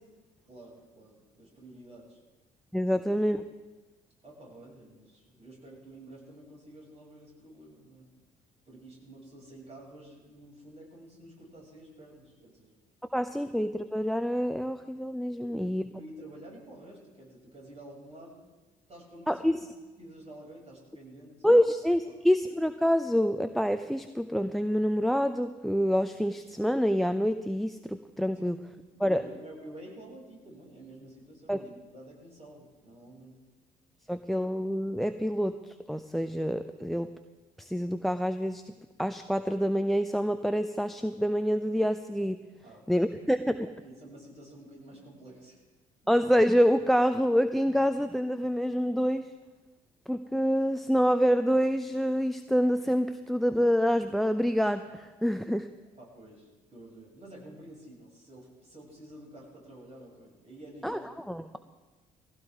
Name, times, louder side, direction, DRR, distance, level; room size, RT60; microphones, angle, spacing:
voice 1, 0.4-2.2 2.9-3.0 4.2-8.1 8.6-12.7 15.4-18.5 18.9-19.5 20.0-21.3 22.0-22.1 28.3-28.5 28.9-33.4 42.6-43.0 43.8-45.6 56.0-61.1 61.5-61.6, right 1 dB, 30° right, -3 dB, 6.8 m, -50 dB
voice 2, 2.7-3.4 13.1-15.9 19.3-19.6 21.4-28.6 29.0-29.2 31.5-31.6 34.1-37.1 37.6-38.7 39.0-42.4 42.9-43.7 46.1-49.3 50.1-55.7 60.8-61.0 61.3-61.6, equal, ahead, 11 dB, 0.6 m, -27 dB
19.5 x 16.0 x 3.6 m, 1.2 s
figure-of-eight pair, 50°, 20 cm